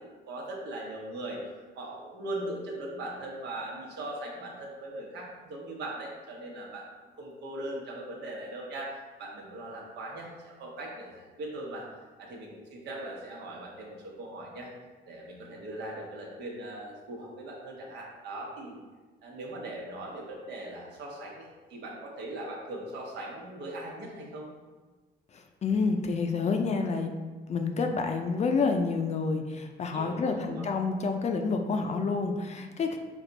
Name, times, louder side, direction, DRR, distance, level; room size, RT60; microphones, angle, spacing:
voice 1, 0.3-6.8 7.2-11.8 12.2-14.7 15.1-18.8 19.2-24.5 29.9-30.7, right 1 dB, 80° right, -2 dB, 1.1 m, -40 dB
voice 2, 25.6-27.1 27.5-33.0, left 4 dB, 40° left, 5 dB, 0.5 m, -28 dB
5.2 x 2.4 x 3.9 m, 1.3 s
cardioid pair, 110°, 17 cm